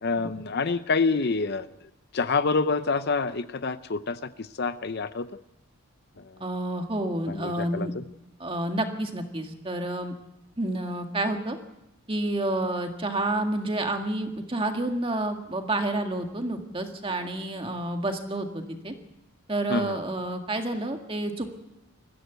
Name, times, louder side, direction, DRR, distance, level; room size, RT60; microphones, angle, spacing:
voice 1, 0.0-1.7 2.1-5.2 6.2-6.3 7.3-8.0 19.7-20.0, left 4 dB, 45° left, 12 dB, 0.6 m, -27 dB
voice 2, 6.4-7.9 8.4-10.1 10.6-11.6 12.1-18.9 19.5-21.5, right 1 dB, 25° right, 5 dB, 1.8 m, -29 dB
21.5 x 15.0 x 8.1 m, 0.87 s
head